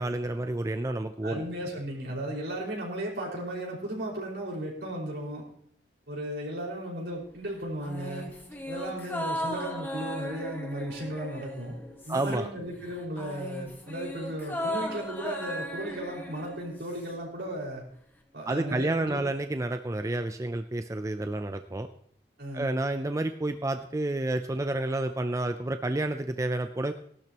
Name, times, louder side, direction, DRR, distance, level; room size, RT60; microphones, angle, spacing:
voice 1, 0.0-1.4 12.1-12.5 18.5-21.9 22.5-26.9, right 2 dB, 15° right, 8 dB, 0.4 m, -30 dB
voice 2, 1.2-5.4 6.1-8.2 8.7-11.7 12.0-17.8 18.3-19.2 22.4-22.7, right 1 dB, 70° right, -3 dB, 4.9 m, -35 dB
sound 1, 7.8-12.6 12.8-17.2 17.5-17.6, equal, 10° left, 1.5 m, -37 dB
18.0 x 12.0 x 2.9 m, 0.65 s
head